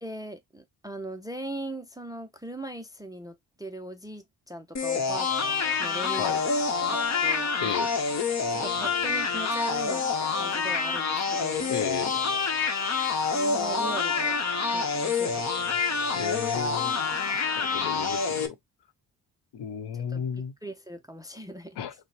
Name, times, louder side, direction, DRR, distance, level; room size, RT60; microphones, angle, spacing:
voice 1, 0.0-6.5 6.8-7.5 8.5-10.0 10.3-11.7 13.3-14.4 14.7-15.4 19.9-20.3 20.6-21.8, right 1 dB, 10° right, 0.4 m, -40 dB
sound 1, 4.8-18.5, left 5 dB, 40° left, 0.9 m, -27 dB
voice 2, 7.6-7.9 11.7-12.2 16.1-16.9 17.6-18.5 19.5-20.5 21.8-21.9, left 8 dB, 70° left, 0.8 m, -33 dB
5.7 x 2.1 x 3.1 m
cardioid pair, 135°, 42 cm